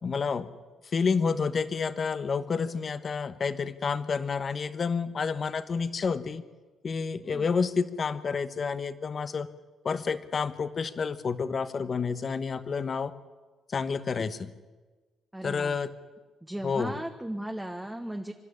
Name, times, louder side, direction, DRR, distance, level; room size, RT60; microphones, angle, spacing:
voice 1, 0.0-0.5 0.8-6.4 6.8-9.5 9.8-13.1 13.7-14.5 15.4-16.0 16.6-17.0, left 5 dB, 45° left, 13 dB, 1.2 m, -29 dB
voice 2, 15.3-15.8 16.4-18.3, right 1 dB, 10° right, 3 dB, 1.4 m, -36 dB
25.5 x 12.5 x 10.0 m, 1.3 s
cardioid pair, 90°, 0 cm